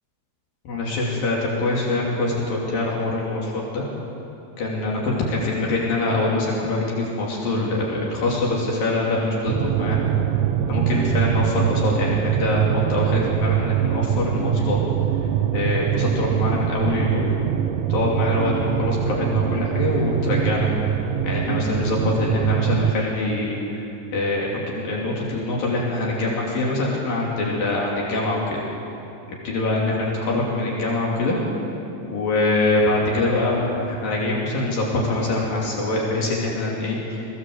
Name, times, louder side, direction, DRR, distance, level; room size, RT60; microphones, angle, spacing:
voice 1, 0.7-3.8 4.6-10.1 10.7-14.8 15.5-17.3 17.9-20.7 21.2-23.9 24.1-28.6 29.3-31.4 32.1-37.3, left 2 dB, 70° left, -4 dB, 4.5 m, -24 dB
sound 1, 9.5-22.9, right 11 dB, 75° right, 2.0 m, -23 dB
22.0 x 16.5 x 7.8 m, 2.8 s
omnidirectional pair, 4.2 m